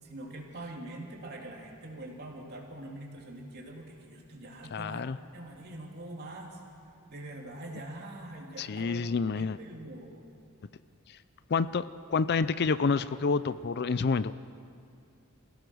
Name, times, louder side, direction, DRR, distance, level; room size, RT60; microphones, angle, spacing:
voice 1, 0.0-5.1 5.3-6.6 7.1-9.0 9.3-10.2, right 1 dB, 45° right, -1 dB, 3.2 m, -44 dB
voice 2, 4.7-5.2 8.6-9.6 11.1-11.2 11.5-14.3, left 4 dB, 45° left, 15 dB, 0.4 m, -28 dB
27.5 x 17.0 x 6.2 m, 2.5 s
head